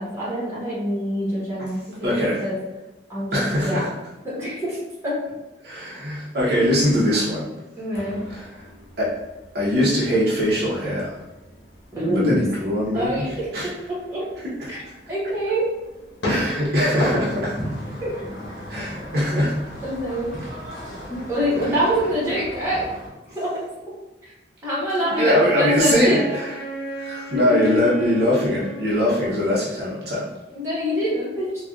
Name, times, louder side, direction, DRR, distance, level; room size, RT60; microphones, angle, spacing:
voice 1, 0.0-2.6 3.1-3.9 4.2-4.8 5.0-5.1 7.8-8.2 11.9-12.4 12.9-14.2 14.7-14.8 15.1-15.7 18.0-18.1 19.8-20.3 21.1-22.8 23.3-23.6 24.2-24.3 24.6-26.2 27.3-27.9 30.5-31.5, equal, 15° right, -8 dB, 1.1 m, -25 dB
voice 2, 2.0-2.4 3.3-3.9 5.6-7.5 8.3-8.6 9.0-9.1 9.5-11.1 12.1-13.7 14.4-14.7 16.2-17.6 18.7-19.5 21.6-21.7 25.1-26.6 27.0-30.3, equal, 60° right, -7 dB, 0.8 m, -22 dB
sound 1, 7.9-22.5, left 1 dB, 70° left, 1.0 m, -38 dB
sound 2, 16.9-23.1, equal, 50° left, 1.2 m, -36 dB
Wind instrument woodwind instrument, 25.0-29.4, right 2 dB, 25° left, 0.9 m, -35 dB
3.5 x 2.3 x 2.3 m, 1.0 s
head